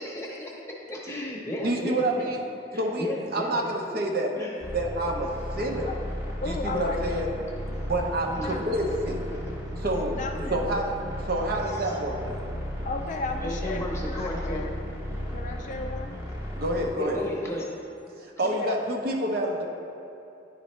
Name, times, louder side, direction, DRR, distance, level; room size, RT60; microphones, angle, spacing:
voice 1, 0.0-2.3 2.7-4.0 4.4-4.6 8.3-8.8 10.4-10.8 11.7-12.0 13.4-14.7 16.1-16.2 17.0-17.7, left 1 dB, 15° left, -3 dB, 0.9 m, -35 dB
voice 2, 1.6-2.4 2.8-4.3 4.7-5.3 5.6-6.0 6.4-7.3 7.8-9.3 9.8-10.1 10.5-10.9 11.3-12.4 16.6-17.2 18.4-19.6, right 1 dB, 55° right, 1 dB, 0.7 m, -28 dB
sound 1, 4.6-16.9, equal, 15° right, 0.9 m, -35 dB
voice 3, 6.4-7.0 8.4-8.6 10.1-10.6 12.8-14.7 15.3-16.2 18.4-18.8, left 2 dB, 40° left, 4 dB, 0.4 m, -35 dB
sound 2, 6.5-16.1, right 3 dB, 85° right, 0.4 m, -46 dB
10.0 x 4.0 x 3.2 m, 2.8 s
head